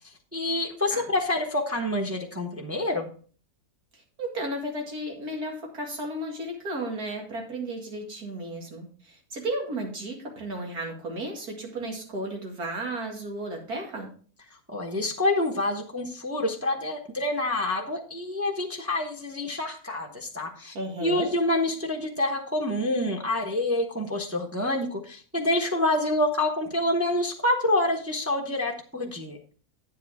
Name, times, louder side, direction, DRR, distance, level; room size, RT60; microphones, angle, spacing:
voice 1, 0.3-3.1 14.7-29.4, left 1 dB, 10° right, 1 dB, 0.9 m, -27 dB
voice 2, 3.9-14.1 20.7-21.3, right 1 dB, 75° right, 1 dB, 2.6 m, -34 dB
9.7 x 7.7 x 3.5 m, 0.42 s
omnidirectional pair, 1.6 m